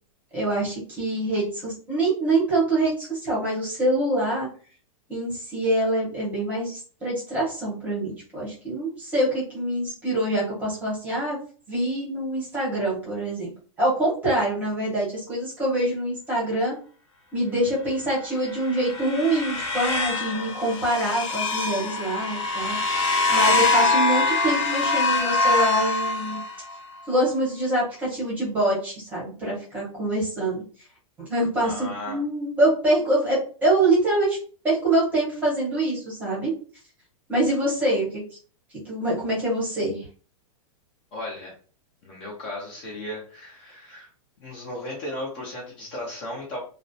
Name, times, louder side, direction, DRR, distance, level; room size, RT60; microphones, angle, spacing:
voice 1, 0.3-4.5 5.1-11.4 11.7-13.5 13.8-16.7 17.3-22.8 23.3-26.4 27.1-30.6 31.2-34.4 34.6-36.5 37.3-38.2 38.8-40.0, right 1 dB, 10° right, -6 dB, 0.8 m, -25 dB
sound 1, 18.5-26.8, left 3 dB, 60° left, 0.8 m, -24 dB
voice 2, 31.6-32.2 41.1-41.5 42.0-44.1 44.4-46.6, left 1 dB, 25° left, -3 dB, 0.6 m, -35 dB
2.4 x 2.0 x 2.6 m, 0.40 s
supercardioid pair, 175°, 18 cm